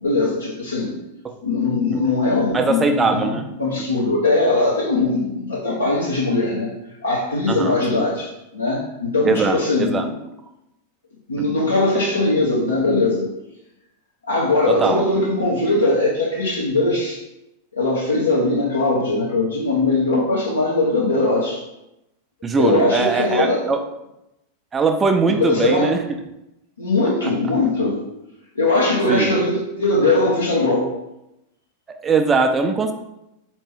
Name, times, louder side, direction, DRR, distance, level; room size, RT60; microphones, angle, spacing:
voice 1, 0.0-0.9 1.4-6.7 7.0-10.2 11.3-13.3 14.2-17.2 17.7-21.6 22.6-23.7 25.3-25.9 26.8-28.0 28.5-30.9, left 2 dB, 80° left, -6 dB, 0.8 m, -20 dB
voice 2, 2.5-3.6 7.5-8.0 9.2-10.1 11.4-11.5 14.7-15.0 22.4-23.8 24.7-26.0 27.2-27.3 29.1-29.3 31.9-32.9, right 4 dB, 15° right, 5 dB, 0.5 m, -21 dB
4.2 x 3.0 x 3.3 m, 0.87 s
figure-of-eight pair, 90°, 0 cm